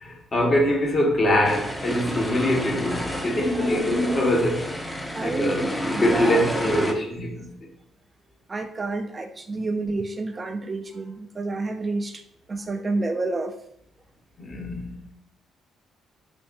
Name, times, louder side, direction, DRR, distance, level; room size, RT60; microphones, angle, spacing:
voice 1, 0.0-4.7 5.2-7.6 14.4-14.9, left 1 dB, 45° left, 1.2 m, -23 dB
sound 1, 1.4-6.9, equal, 15° left, 0.6 m, -30 dB
voice 2, 5.1-7.0 8.5-12.2 12.5-13.5, right 3 dB, 35° right, 0.3 m, -29 dB
5.2 x 2.5 x 2.5 m
hypercardioid pair, 50°, 0 cm